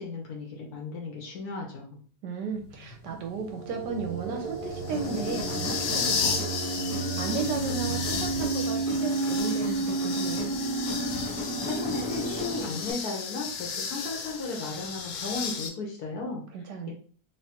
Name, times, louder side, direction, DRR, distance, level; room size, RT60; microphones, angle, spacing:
voice 1, 0.0-2.0 11.6-16.4 16.9-17.0, left 3 dB, 60° left, -1 dB, 1.2 m, -35 dB
voice 2, 2.2-6.6 7.2-10.5 16.5-16.9, right 5 dB, 75° right, 3 dB, 1.1 m, -34 dB
sound 1, 2.6-15.7, left 5 dB, 75° left, 1.2 m, -34 dB
sound 2, 3.2-12.6, right 4 dB, 25° right, 1.1 m, -32 dB
Human voice, 4.9-12.9, left 4 dB, 15° left, 0.8 m, -38 dB
3.4 x 3.2 x 2.9 m, 0.43 s
omnidirectional pair, 2.1 m